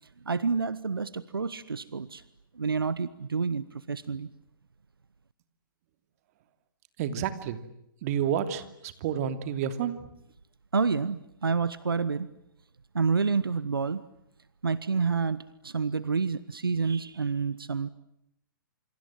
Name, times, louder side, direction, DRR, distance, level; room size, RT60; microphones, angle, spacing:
voice 1, 0.2-2.2 2.5-4.3 10.7-12.3 12.9-14.0 14.6-17.9, right 5 dB, 90° right, 17 dB, 1.2 m, -28 dB
voice 2, 7.0-7.6 8.0-8.6 9.0-9.9, right 9 dB, 45° right, 10 dB, 2.8 m, -29 dB
28.5 x 27.0 x 7.6 m, 0.79 s
hypercardioid pair, 130°, 12 cm